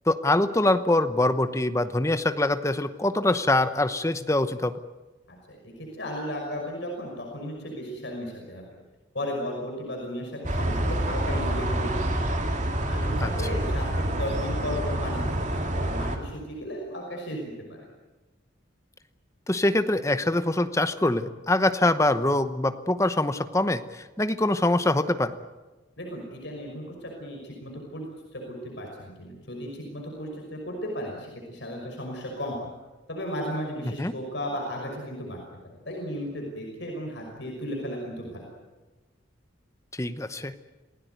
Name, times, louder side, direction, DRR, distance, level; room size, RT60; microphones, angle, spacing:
voice 1, 0.1-4.8 13.2-13.3 19.5-25.3 33.9-34.1 40.0-40.5, left 1 dB, 15° left, 10 dB, 0.9 m, -24 dB
voice 2, 5.3-8.7 9.1-11.9 12.9-17.8 26.0-32.6 33.1-35.4 35.9-38.5, equal, 65° left, -1 dB, 5.8 m, -35 dB
sound 1, 10.4-16.2, right 1 dB, 35° right, 2.6 m, -27 dB
27.5 x 17.5 x 9.4 m, 1.2 s
head